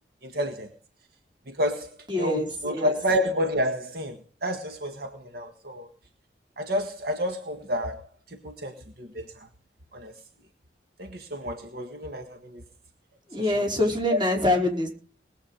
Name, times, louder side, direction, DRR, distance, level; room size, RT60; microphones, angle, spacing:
voice 1, 0.2-0.7 1.5-1.9 2.2-5.9 6.6-8.1 8.4-9.2 9.9-10.1 11.0-12.6 14.1-14.2, equal, 60° right, 1.7 m, -29 dB
voice 2, 2.1-2.5 2.7-2.9 13.3-14.9, left 1 dB, 25° right, 5.2 m, -24 dB
20.5 x 8.7 x 5.1 m
head